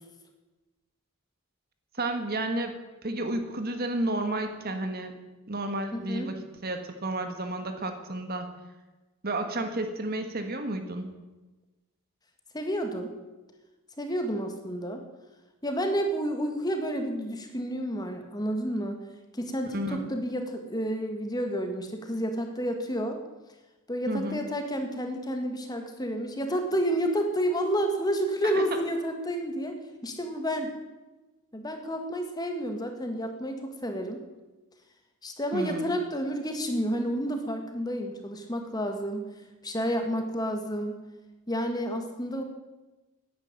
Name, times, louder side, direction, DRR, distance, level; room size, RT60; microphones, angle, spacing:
voice 1, 1.9-2.8 3.0-5.1 5.5-8.5 9.2-11.1 19.7-20.1 24.1-24.4 28.4-28.7 35.5-35.9, right 1 dB, 45° right, 7 dB, 1.6 m, -31 dB
voice 2, 5.9-6.3 12.5-13.1 14.0-15.0 15.6-19.0 19.3-23.2 23.9-29.8 30.0-30.7 31.5-34.2 35.2-39.3 39.6-41.0 41.5-42.4, equal, 20° left, 5 dB, 1.7 m, -30 dB
11.5 x 10.5 x 8.9 m, 1.1 s
head